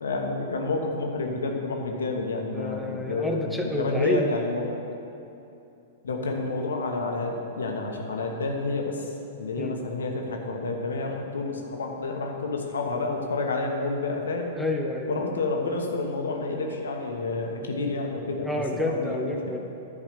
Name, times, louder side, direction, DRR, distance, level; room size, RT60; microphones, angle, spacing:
voice 1, 0.0-4.6 6.0-9.1 9.4-14.5 15.1-19.3, left 3 dB, 70° left, 2 dB, 1.2 m, -29 dB
voice 2, 2.5-4.4 9.6-9.8 14.5-15.4 18.4-19.6, left 1 dB, ahead, 1 dB, 0.9 m, -29 dB
11.0 x 4.8 x 6.8 m, 2.8 s
figure-of-eight pair, 100°, 0 cm